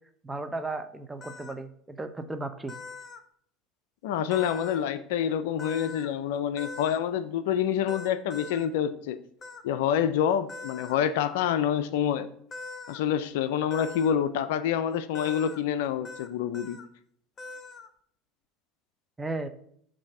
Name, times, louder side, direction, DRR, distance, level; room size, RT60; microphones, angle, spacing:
voice 1, 0.2-2.7 19.2-19.5, right 2 dB, 15° right, 8 dB, 0.7 m, -35 dB
sound 1, 1.2-1.6 2.7-3.2 4.3-4.9 5.6-6.1 6.6-7.0 7.9-8.7 9.4-9.6 10.5-11.0 12.5-13.0 13.7-14.1 15.1-15.6 16.0-16.3 16.5-16.9 17.4-17.9, left 4 dB, 35° left, 0.7 m, -41 dB
voice 2, 4.0-9.2 9.6-12.3 12.9-16.8, left 9 dB, 70° left, 13 dB, 0.4 m, -27 dB
7.1 x 2.7 x 5.3 m, 0.65 s
hypercardioid pair, 75°, 0 cm